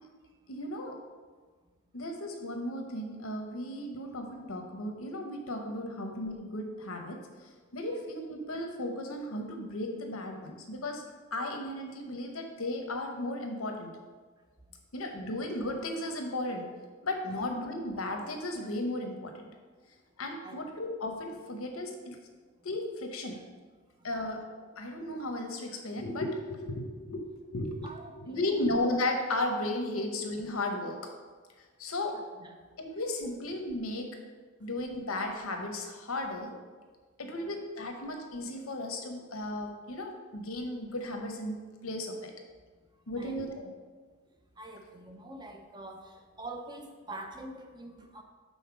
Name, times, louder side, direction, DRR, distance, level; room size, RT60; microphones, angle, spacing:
voice 1, 0.5-1.0 1.9-11.0 11.3-13.9 14.9-16.7 17.0-19.5 20.2-22.2 22.6-23.4 24.0-24.4 24.8-27.2 27.5-31.1 31.8-32.2 32.8-34.1 34.6-36.5 37.2-41.6 41.8-42.3 43.1-43.7, left 1 dB, 85° left, 4 dB, 1.0 m, -35 dB
voice 2, 27.8-28.7 32.1-32.6 37.2-37.5 43.2-43.4 44.6-48.2, right 2 dB, 20° right, 4 dB, 0.5 m, -46 dB
5.7 x 4.0 x 6.0 m, 1.4 s
head